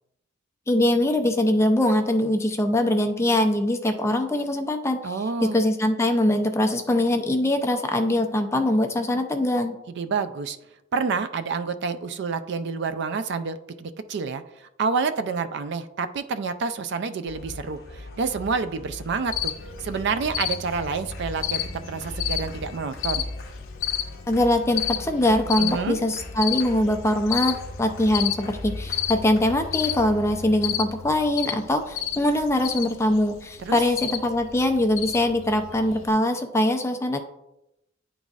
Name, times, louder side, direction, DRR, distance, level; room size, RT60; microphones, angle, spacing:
voice 1, 0.7-5.2 5.4-9.8 24.3-37.2, left 1 dB, 15° left, 5 dB, 0.5 m, -22 dB
voice 2, 5.0-5.6 10.0-10.6 10.9-19.5 19.8-23.2 25.6-26.0 33.6-33.8, right 5 dB, 60° right, 11 dB, 0.4 m, -28 dB
sound 1, 17.3-30.8, left 2 dB, 50° left, 0.9 m, -39 dB
Cricket, 19.3-36.1, left 10 dB, 80° left, 0.5 m, -32 dB
10.0 x 3.9 x 2.4 m, 0.87 s
head